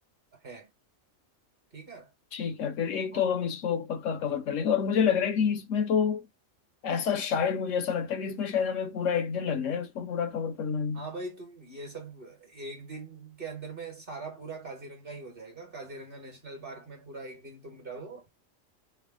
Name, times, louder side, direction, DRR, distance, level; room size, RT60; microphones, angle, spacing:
voice 1, 1.7-2.1 3.1-3.2 4.2-4.4 10.9-18.3, right 3 dB, 45° right, 1.6 m, -42 dB
voice 2, 2.3-6.3 6.8-11.1, left 7 dB, 75° left, 1.0 m, -28 dB
3.3 x 2.2 x 3.6 m
omnidirectional pair, 1.4 m